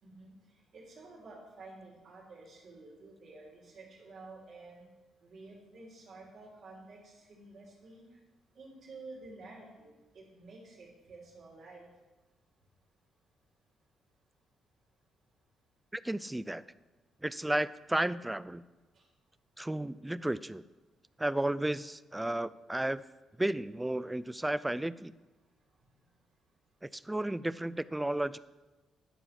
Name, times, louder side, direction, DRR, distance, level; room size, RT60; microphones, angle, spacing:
voice 1, 0.0-4.9 5.2-8.2 8.5-11.9 18.9-19.0, right 3 dB, 60° right, -3 dB, 3.2 m, -51 dB
voice 2, 15.9-16.6 17.2-18.6 19.6-20.6 21.2-23.0 23.4-25.1 26.8-28.4, right 1 dB, 10° right, 17 dB, 0.3 m, -33 dB
11.0 x 4.8 x 5.9 m, 1.2 s
cardioid pair, 90°, 0 cm